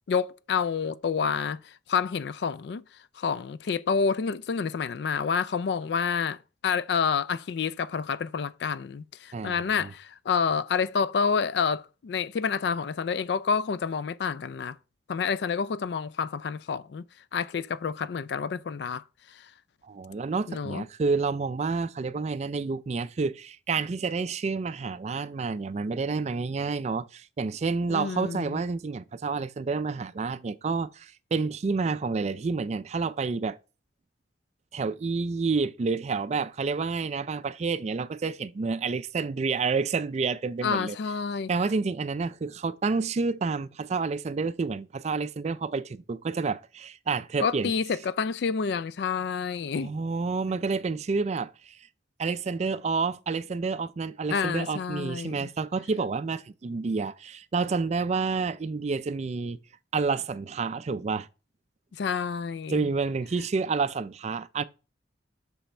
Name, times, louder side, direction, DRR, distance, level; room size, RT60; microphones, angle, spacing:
voice 1, 0.1-2.8 3.2-14.8 15.1-17.0 17.3-19.5 20.5-20.8 27.9-28.6 40.6-41.5 47.4-49.9 54.3-55.5 61.9-62.9, left 6 dB, 60° left, 0.4 m, -28 dB
voice 2, 9.3-9.9 19.9-33.6 34.7-41.0 41.5-47.7 49.7-51.9 52.2-59.6 59.9-61.3 62.7-64.6, right 4 dB, 35° right, 0.3 m, -29 dB
6.1 x 5.5 x 4.3 m
head